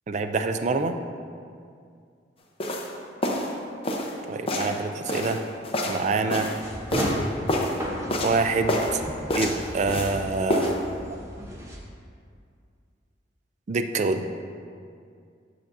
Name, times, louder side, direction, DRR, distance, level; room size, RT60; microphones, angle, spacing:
voice 1, 0.1-1.0 4.3-5.4 5.9-6.5 8.2-9.0 9.3-10.7 13.7-14.3, right 3 dB, 40° right, 8 dB, 0.3 m, -26 dB
sound 1, 2.6-2.9 3.2-3.5 3.8-4.1 4.5-4.8 5.1-6.6 6.9-7.2 7.5-7.8 8.1-8.4 8.7-9.0 9.3-10.2 10.5-10.8, left 1 dB, 30° left, 0.7 m, -27 dB
sound 2, 6.6-11.8, equal, 15° right, 0.8 m, -33 dB
8.3 x 6.8 x 2.6 m, 2.3 s
head